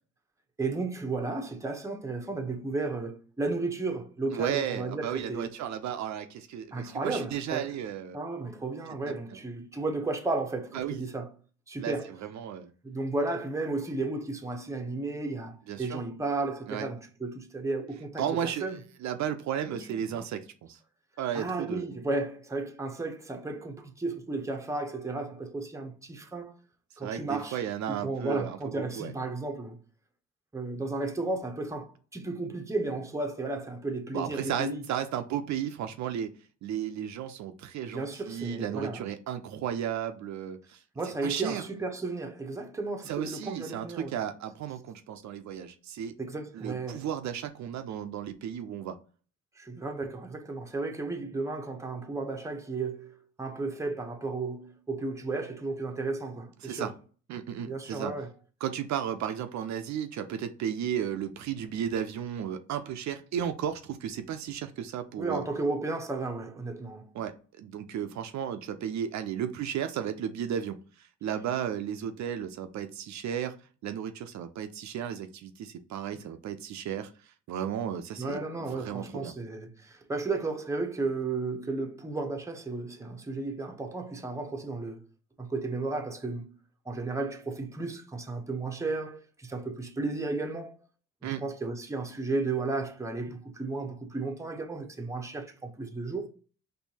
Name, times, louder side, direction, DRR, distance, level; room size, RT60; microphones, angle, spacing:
voice 1, 0.6-5.5 6.7-7.7 8.1-11.3 11.7-12.1 12.8-18.8 19.6-19.9 20.1-20.3 21.3-26.5 27.0-27.6 27.9-29.8 30.5-34.8 37.9-39.1 40.9-44.2 46.2-47.1 49.6-56.9 57.7-58.3 65.2-67.1 76.1-76.2 78.2-85.0 85.4-86.5 86.9-90.8 91.2-96.3, right 3 dB, 10° right, 0.7 m, -34 dB
voice 2, 4.3-8.2 9.0-9.2 10.7-11.0 11.8-11.9 12.2-12.7 15.7-16.0 16.7-16.9 18.2-20.8 21.2-21.9 27.0-29.1 34.1-36.3 36.6-40.8 41.2-41.6 43.1-46.1 46.5-49.0 56.6-56.9 57.3-58.1 58.6-65.4 67.1-73.5 73.8-78.4 78.7-79.3 91.2-91.4, right 9 dB, 65° right, 0.5 m, -34 dB
4.4 x 2.7 x 2.7 m
cardioid pair, 90°, 30 cm